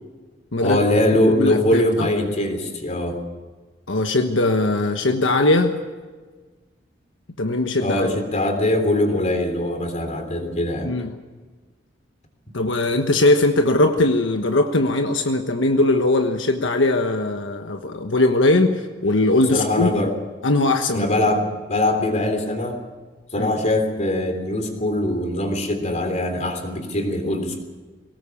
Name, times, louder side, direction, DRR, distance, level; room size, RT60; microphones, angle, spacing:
voice 1, 0.6-3.2 7.8-10.9 19.5-20.1 20.9-22.8 23.3-27.6, left 1 dB, 40° left, 6 dB, 3.4 m, -22 dB
voice 2, 1.4-2.1 3.9-5.7 7.4-8.1 10.8-11.2 12.5-20.0 20.4-21.1 23.4-23.5, left 2 dB, 80° left, 5 dB, 1.3 m, -20 dB
22.0 x 18.5 x 7.2 m, 1.4 s
head